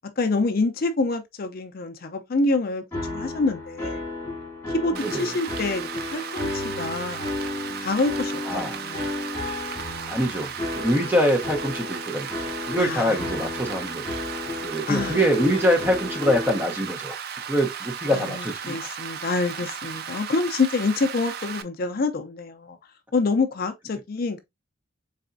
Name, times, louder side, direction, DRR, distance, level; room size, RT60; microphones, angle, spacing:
voice 1, 0.2-2.8 3.1-4.0 4.7-7.3 7.8-9.1 12.8-13.2 14.9-15.2 18.1-22.8 23.1-24.4, left 3 dB, 45° left, 0.5 m, -26 dB
sound 1, 2.9-16.6, left 2 dB, 10° left, 2.2 m, -33 dB
Rain, 4.9-21.6, right 7 dB, 50° right, 0.4 m, -35 dB
voice 2, 8.4-8.8 10.1-14.1 14.6-17.2 17.5-18.9, equal, 10° right, 0.8 m, -24 dB
4.0 x 3.4 x 2.5 m
head